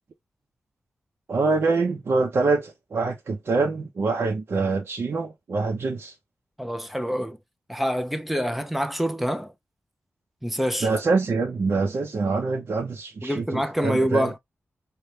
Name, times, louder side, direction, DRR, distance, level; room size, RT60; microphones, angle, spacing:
voice 1, 1.3-6.1 10.8-14.3, right 3 dB, 55° right, 0.7 m, -25 dB
voice 2, 6.6-7.4 7.7-9.5 10.4-10.9 13.2-14.4, equal, 5° right, 0.5 m, -26 dB
5.4 x 2.2 x 3.2 m
wide cardioid pair, 175°, 5 cm